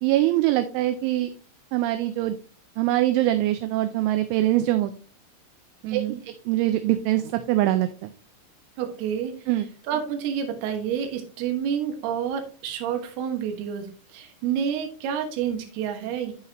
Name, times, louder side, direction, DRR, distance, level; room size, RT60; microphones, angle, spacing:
voice 1, 0.0-1.3 1.7-2.4 2.8-4.9 5.9-8.1 9.5-9.7, right 14 dB, 85° right, 8 dB, 2.8 m, -23 dB
voice 2, 5.8-6.2 8.8-9.3 9.9-13.9 14.1-16.3, right 8 dB, 70° right, 4 dB, 2.7 m, -29 dB
10.5 x 5.7 x 2.9 m, 0.39 s
omnidirectional pair, 5.9 m